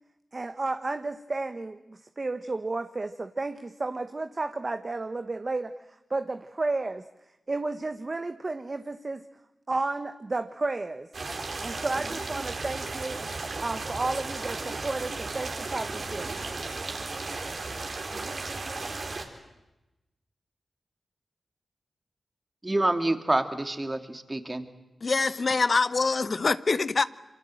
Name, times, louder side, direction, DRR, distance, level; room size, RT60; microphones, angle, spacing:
voice 1, 0.3-7.0 7.5-9.2 9.7-11.1 11.6-13.2 13.6-16.4, right 3 dB, 45° right, 1.1 m, -32 dB
sound 1, 11.1-19.2, right 3 dB, 60° right, 4.0 m, -35 dB
voice 2, 22.6-24.6, right 2 dB, 30° right, 2.7 m, -27 dB
voice 3, 25.0-27.0, left 4 dB, 55° left, 0.8 m, -24 dB
26.5 x 24.0 x 7.8 m
cardioid pair, 40°, 0 cm